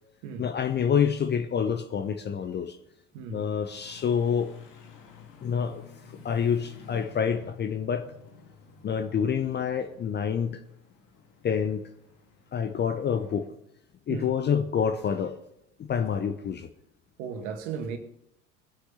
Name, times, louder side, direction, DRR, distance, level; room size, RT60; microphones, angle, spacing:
voice 1, 0.4-2.8 3.3-4.5 5.4-5.8 6.2-8.1 8.8-10.6 11.4-11.8 12.5-13.5 14.1-15.4 15.9-16.7, left 7 dB, 25° left, 0.8 m, -27 dB
voice 2, 3.1-3.5 14.1-14.3 17.2-18.0, right 6 dB, 55° right, 2.0 m, -35 dB
sound 1, 3.6-13.5, left 6 dB, 45° left, 2.9 m, -52 dB
20.5 x 8.1 x 5.7 m
figure-of-eight pair, 70°, 44 cm